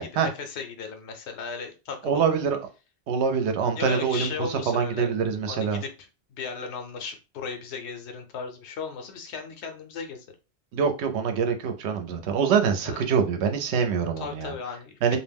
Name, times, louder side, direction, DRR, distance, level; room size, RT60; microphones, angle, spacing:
voice 1, 0.0-2.3 3.7-5.1 5.5-10.2 12.8-13.0 14.2-15.2, left 5 dB, 85° left, 0.9 m, -36 dB
voice 2, 2.0-2.6 3.1-5.8 10.7-14.5 15.0-15.2, right 6 dB, 85° right, 0.9 m, -25 dB
2.4 x 2.1 x 3.3 m
omnidirectional pair, 1.1 m